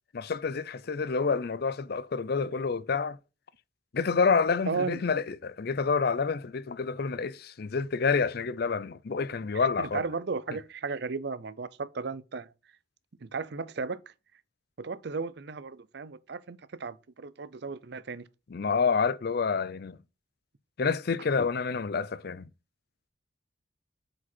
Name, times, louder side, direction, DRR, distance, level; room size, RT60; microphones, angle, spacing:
voice 1, 0.1-3.2 3.9-10.0 18.5-20.0 20.8-22.5, left 5 dB, 55° left, 0.5 m, -28 dB
voice 2, 4.7-5.0 9.8-12.5 13.2-14.0 14.8-18.2, right 4 dB, 60° right, 0.6 m, -35 dB
8.2 x 5.0 x 4.3 m
head